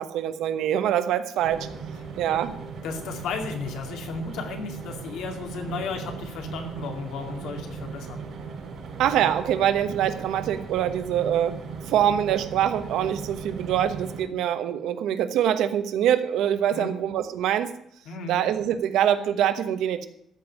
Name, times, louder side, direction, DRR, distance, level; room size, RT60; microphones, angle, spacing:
voice 1, 0.0-1.7 2.2-2.5 9.0-11.6 11.9-17.7 18.3-20.1, right 10 dB, 75° right, 10 dB, 1.1 m, -24 dB
sound 1, 1.4-14.2, right 5 dB, 50° right, 5.1 m, -38 dB
voice 2, 2.8-8.2 16.7-16.9 18.1-18.4, left 4 dB, 75° left, 3 dB, 2.4 m, -34 dB
14.0 x 5.4 x 9.4 m, 0.72 s
cardioid pair, 180°, 0 cm